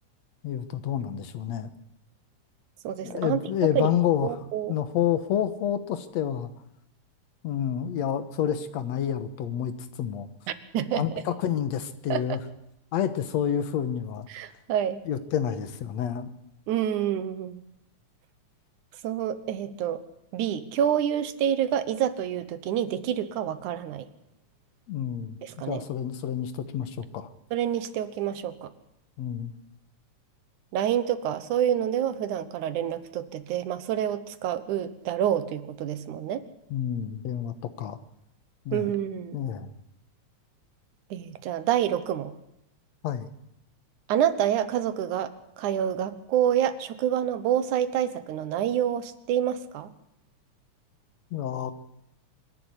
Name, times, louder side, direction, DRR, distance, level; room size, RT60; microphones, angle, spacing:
voice 1, 0.4-1.7 3.0-4.4 4.7-6.5 7.4-9.7 10.0-10.3 11.0-12.4 12.9-14.3 15.1-16.3 24.9-25.4 25.7-27.3 29.2-29.5 36.7-38.0 38.7-38.9 39.3-39.7 43.0-43.3 51.3-51.7, left 9 dB, 70° left, 11 dB, 2.4 m, -29 dB
voice 2, 2.8-3.9 4.2-4.7 10.5-11.0 12.1-12.2 14.3-15.0 16.7-17.6 19.0-20.0 20.3-24.1 25.4-25.8 27.5-28.7 30.7-36.4 38.7-39.4 41.1-42.4 44.1-45.3 45.6-49.9, right 10 dB, 85° right, 12 dB, 2.6 m, -27 dB
25.5 x 11.0 x 9.8 m, 0.82 s
omnidirectional pair, 3.4 m